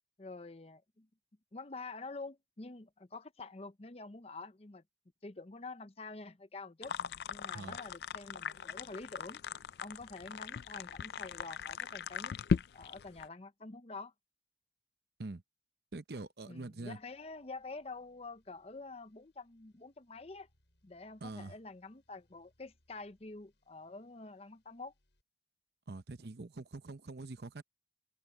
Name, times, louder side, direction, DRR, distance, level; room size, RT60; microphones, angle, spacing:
voice 1, 0.2-1.1 1.5-4.8 5.2-6.9 7.3-9.4 9.8-12.4 12.7-14.1 16.5-20.5 20.8-24.9, left 3 dB, 35° left, 0.7 m, -47 dB
sound 1, 6.8-13.3, left 6 dB, 60° left, 0.4 m, -38 dB
voice 2, 15.9-17.0 21.2-21.6 25.9-27.6, right 2 dB, 65° right, 0.8 m, -44 dB
sound 2, 17.0-25.2, left 1 dB, 85° left, 8.0 m, -77 dB
head